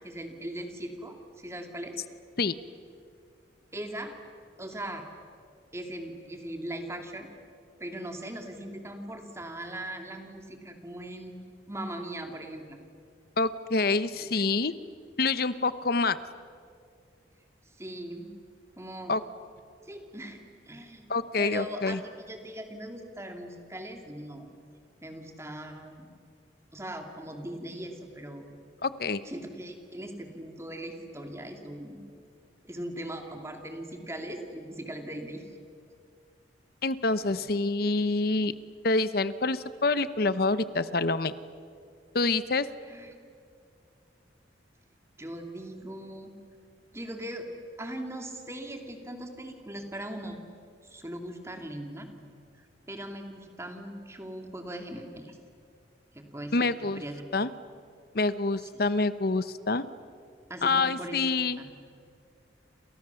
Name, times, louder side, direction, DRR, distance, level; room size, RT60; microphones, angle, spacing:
voice 1, 0.0-2.0 3.7-4.2 4.6-5.0 5.7-7.3 7.8-11.4 11.7-12.8 14.2-14.3 17.8-18.3 18.8-19.2 19.8-20.4 20.7-21.1 21.4-24.5 25.0-26.1 26.7-28.5 29.2-32.0 32.6-35.5 42.8-43.1 45.2-46.3 46.9-47.5 47.8-50.4 50.8-52.1 52.5-55.4 56.1-57.4 58.6-58.7 60.5-61.7, right 1 dB, 15° right, 4 dB, 2.7 m, -40 dB
voice 2, 13.4-14.7 15.2-16.2 19.1-19.2 21.1-22.0 28.8-29.2 36.8-38.5 38.8-41.3 42.1-42.7 56.5-57.0 57.3-57.5 58.1-59.8 60.6-61.6, left 3 dB, 55° left, 14 dB, 0.9 m, -26 dB
29.0 x 27.5 x 7.1 m, 2.2 s
head